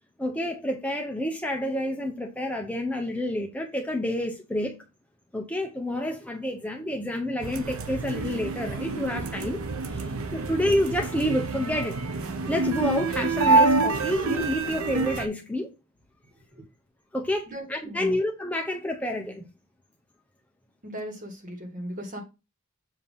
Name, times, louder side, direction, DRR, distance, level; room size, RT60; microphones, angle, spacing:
voice 1, 0.2-4.8 5.3-9.6 9.9-12.0 12.5-15.7 17.1-19.4, left 1 dB, 5° left, 0.7 m, -29 dB
sound 1, 7.4-15.3, right 3 dB, 80° right, 0.7 m, -27 dB
voice 2, 17.5-18.2 20.8-22.2, equal, 40° right, 1.5 m, -37 dB
7.3 x 2.8 x 5.5 m
head